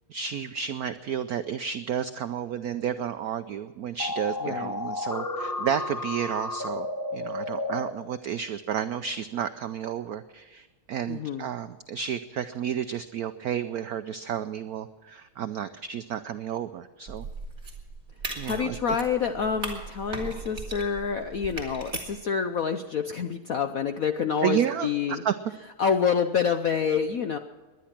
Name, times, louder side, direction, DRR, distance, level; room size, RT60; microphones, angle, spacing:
voice 1, 0.1-6.9 7.1-17.3 18.3-19.0 24.4-25.3, right 8 dB, 80° right, 11 dB, 0.8 m, -31 dB
sound 1, 4.0-7.9, left 2 dB, 10° left, 1.1 m, -32 dB
voice 2, 11.1-11.5 18.4-25.2 25.8-27.4, left 6 dB, 65° left, 8 dB, 0.9 m, -27 dB
sound 2, 17.1-22.2, right 3 dB, 30° right, 3.1 m, -38 dB
20.5 x 11.0 x 5.9 m, 1.3 s
omnidirectional pair, 2.3 m